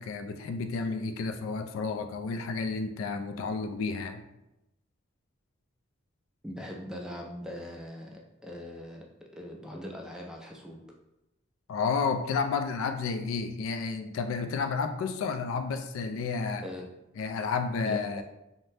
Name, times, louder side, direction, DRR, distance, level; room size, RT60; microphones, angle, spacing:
voice 1, 0.0-4.2 11.7-16.6 17.2-18.2, left 4 dB, 85° left, 9 dB, 0.3 m, -31 dB
voice 2, 6.4-9.1 9.3-10.8 16.6-16.9 17.8-18.0, left 1 dB, 5° right, 0 dB, 0.3 m, -41 dB
2.6 x 2.1 x 3.2 m, 0.89 s
head